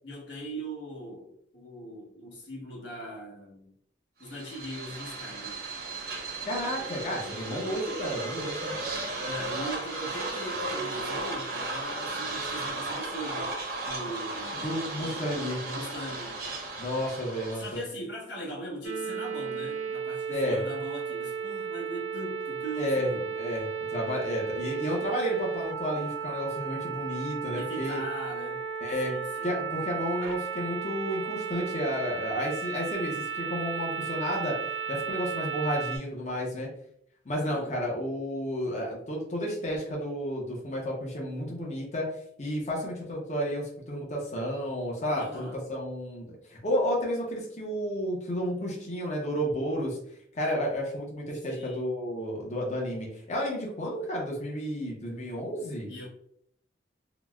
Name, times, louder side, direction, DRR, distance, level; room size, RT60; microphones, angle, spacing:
voice 1, 0.0-3.7 4.2-5.6 9.2-13.5 13.8-14.7 15.0-15.3 15.6-16.4 17.5-23.2 27.5-28.7 29.0-29.5 37.4-37.7 45.1-45.6 51.4-51.9 55.9-56.1, right 1 dB, 75° left, 1.1 m, -40 dB
sound 1, 4.3-17.8, right 2 dB, 55° right, 0.7 m, -35 dB
voice 2, 6.5-8.7 14.6-15.6 16.8-17.8 20.3-20.6 22.8-28.0 28.8-29.1 29.4-34.6 34.9-36.7 37.3-42.1 42.4-50.0 50.3-55.9, equal, 40° left, 0.7 m, -31 dB
sound 2, 18.8-36.0, right 6 dB, 90° right, 0.4 m, -34 dB
3.9 x 2.1 x 2.3 m
head